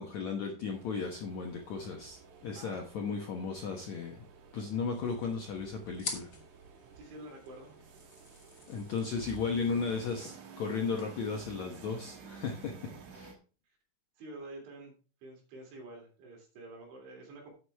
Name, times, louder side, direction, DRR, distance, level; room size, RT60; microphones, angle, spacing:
voice 1, 0.0-4.3 4.5-6.3 8.7-13.3, left 5 dB, 75° left, 2 dB, 1.7 m, -35 dB
sound 1, 0.7-13.3, right 6 dB, 60° right, 2.2 m, -53 dB
sound 2, 4.6-12.2, left 3 dB, 45° left, 1.1 m, -48 dB
voice 2, 7.0-7.8 13.7-13.8 14.2-17.5, right 2 dB, 90° right, 1 dB, 5.5 m, -48 dB
11.0 x 8.2 x 3.5 m, 0.36 s
omnidirectional pair, 5.1 m